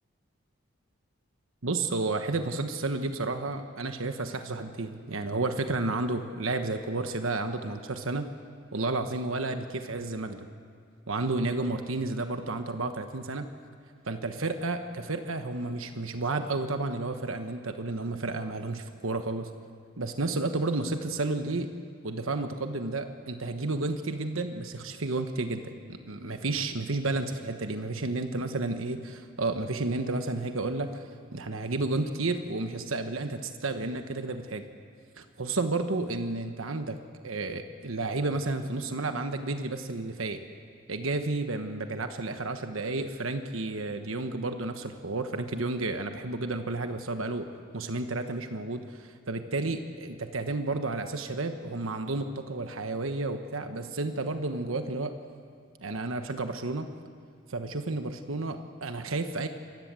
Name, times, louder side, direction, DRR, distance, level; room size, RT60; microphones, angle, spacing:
voice 1, 1.6-8.3 8.7-10.5 11.1-13.5 14.0-19.5 20.0-21.7 22.0-34.7 35.2-37.0 37.2-40.4 40.9-47.5 47.7-55.1 55.8-56.9 57.5-59.5, right 2 dB, 85° right, 7 dB, 1.2 m, -31 dB
26.0 x 20.0 x 7.6 m, 2.3 s
head